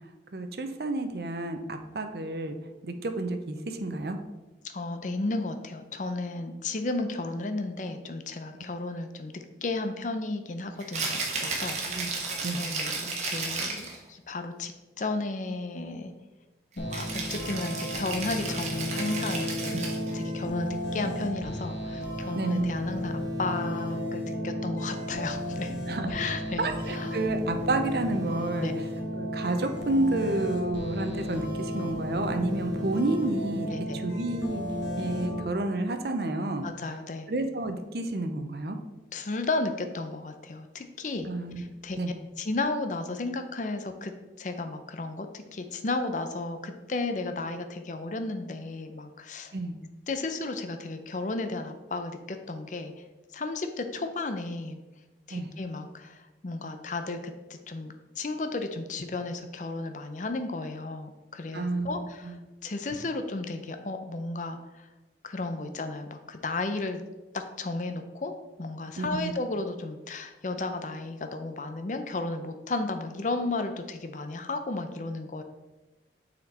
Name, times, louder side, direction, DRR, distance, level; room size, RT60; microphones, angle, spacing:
voice 1, 0.3-2.6 2.8-4.2 11.8-12.1 12.4-12.6 22.3-22.7 25.9-26.1 26.6-28.9 29.2-34.6 35.0-36.7 37.3-38.8 41.3-41.6 42.0-42.1 49.5-49.8 55.3-55.5 61.5-62.4 69.0-69.3, right 2 dB, 60° right, 7 dB, 0.6 m, -30 dB
voice 2, 4.6-16.1 16.8-25.7 26.1-27.1 28.6-28.7 33.7-34.0 36.6-37.3 39.1-41.3 41.6-42.0 42.4-44.1 44.4-49.5 50.1-52.9 53.3-54.8 55.3-62.4 62.6-64.9 65.2-67.0 67.3-75.4, left 2 dB, 45° left, 7 dB, 0.5 m, -34 dB
Rattle (instrument), 10.8-14.0 16.9-20.1, right 3 dB, 40° right, 1.2 m, -33 dB
sound 1, 16.8-35.4, left 1 dB, 75° left, 1.5 m, -33 dB
6.6 x 4.3 x 4.2 m, 1.1 s
head